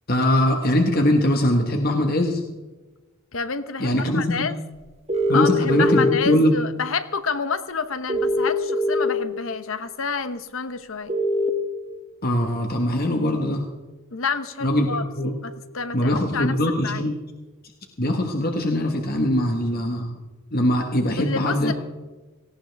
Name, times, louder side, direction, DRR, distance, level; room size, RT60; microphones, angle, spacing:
voice 1, 0.1-2.4 3.8-4.5 5.3-6.5 12.2-13.7 14.6-15.3 15.9-17.1 18.0-20.1 20.5-21.7, left 1 dB, 45° left, 3 dB, 1.4 m, -21 dB
voice 2, 3.3-4.6 5.3-11.1 14.1-15.1 15.4-16.6 16.8-17.1 21.2-21.7, left 5 dB, 70° left, 11 dB, 1.0 m, -29 dB
sound 1, 5.1-6.1 8.1-9.1 11.1-11.5, equal, 30° right, 1.4 m, -21 dB
18.5 x 17.0 x 3.5 m, 1.2 s
head